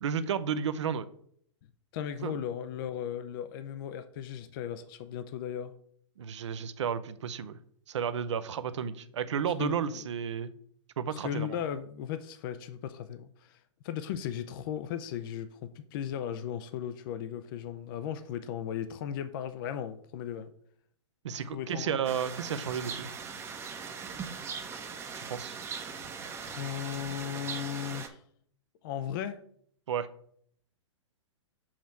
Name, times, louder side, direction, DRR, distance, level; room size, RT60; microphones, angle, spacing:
voice 1, 0.0-1.1 2.2-2.3 6.2-7.6 7.9-10.5 11.0-11.6 21.2-23.1 25.1-25.6 29.9-30.1, right 7 dB, 70° right, 12 dB, 0.6 m, -32 dB
voice 2, 1.9-5.7 9.6-10.0 11.1-20.5 21.5-21.9 26.4-28.2 28.8-29.4, left 9 dB, 45° left, 11 dB, 0.5 m, -36 dB
sound 1, 22.0-28.1, right 6 dB, 15° right, 0.7 m, -40 dB
7.2 x 3.0 x 5.8 m, 0.64 s
hypercardioid pair, 115°, 16 cm